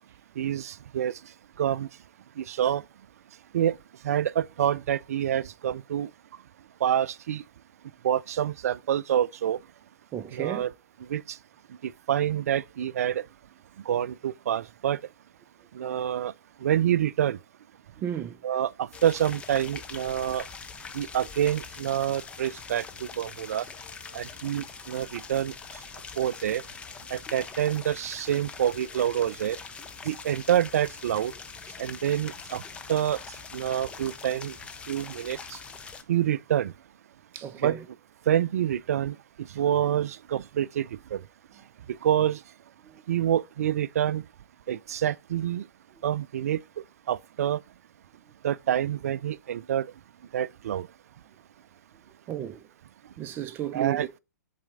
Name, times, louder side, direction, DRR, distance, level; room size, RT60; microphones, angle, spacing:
voice 1, 0.4-1.2 1.6-1.9 2.4-2.8 3.5-3.8 4.0-6.1 6.8-7.4 8.0-9.6 10.3-10.7 11.1-11.4 11.8-13.2 13.9-15.0 15.7-16.3 16.6-17.4 18.4-20.5 20.9-23.7 24.1-25.5 26.2-26.6 27.1-29.6 30.0-31.3 31.8-32.6 32.9-34.6 34.9-35.6 36.1-36.7 37.6-37.7 38.3-41.2 41.9-42.4 43.1-44.2 44.7-45.7 46.0-46.6 47.1-47.6 48.4-49.9 50.3-50.9 53.7-54.1, right 10 dB, 60° right, 0.4 m, -27 dB
voice 2, 10.1-10.6 18.0-18.4 31.1-31.2 37.3-37.8 42.8-43.0 52.3-52.7 53.2-54.1, right 10 dB, 25° right, 0.6 m, -33 dB
sound 1, 18.9-36.0, left 5 dB, 15° left, 0.5 m, -43 dB
7.4 x 4.1 x 3.7 m
figure-of-eight pair, 120°, 9 cm